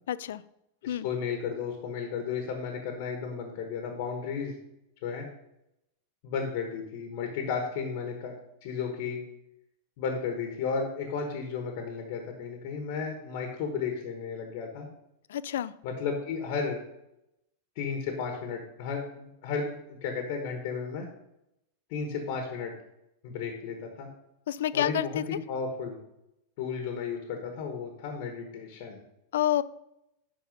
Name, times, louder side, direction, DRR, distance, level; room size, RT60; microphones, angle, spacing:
voice 1, 0.1-0.4 0.9-1.1 15.3-15.7 24.5-25.2 29.3-29.6, left 11 dB, 85° left, 17 dB, 0.4 m, -28 dB
voice 2, 0.8-4.6 5.0-5.3 6.2-8.4 8.6-9.2 10.0-14.9 15.8-16.8 17.7-19.7 20.0-21.1 21.9-22.7 23.2-24.1 24.7-26.0 26.6-29.0, left 5 dB, 45° left, 3 dB, 1.3 m, -33 dB
11.0 x 4.1 x 5.3 m, 0.85 s
supercardioid pair, 165°, 0 cm